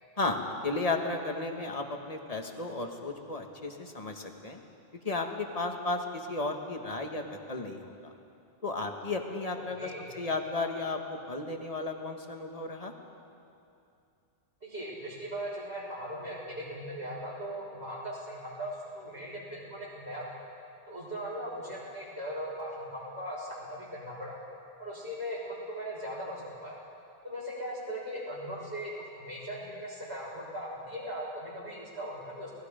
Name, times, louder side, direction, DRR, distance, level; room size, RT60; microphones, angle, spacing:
voice 1, 0.2-4.6 5.0-8.1 8.6-9.9 10.1-12.9, left 2 dB, 35° left, 3 dB, 1.7 m, -34 dB
voice 2, 9.8-10.2 14.6-20.2 20.9-24.3 24.8-26.8 27.2-32.5, equal, 65° right, -6 dB, 6.6 m, -39 dB
29.0 x 19.0 x 5.2 m, 2.7 s
omnidirectional pair, 1.2 m